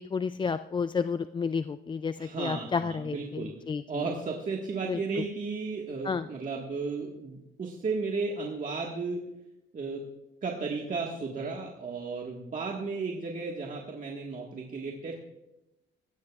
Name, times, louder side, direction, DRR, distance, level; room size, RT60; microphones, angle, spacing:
voice 1, 0.0-4.1 4.8-5.2 6.0-6.3, left 5 dB, 25° left, 12 dB, 0.3 m, -31 dB
voice 2, 2.2-3.5 3.9-9.2 9.7-10.1 10.4-15.1, right 4 dB, 40° right, -1 dB, 1.6 m, -34 dB
17.5 x 15.0 x 2.4 m, 0.91 s
cardioid pair, 90°, 20 cm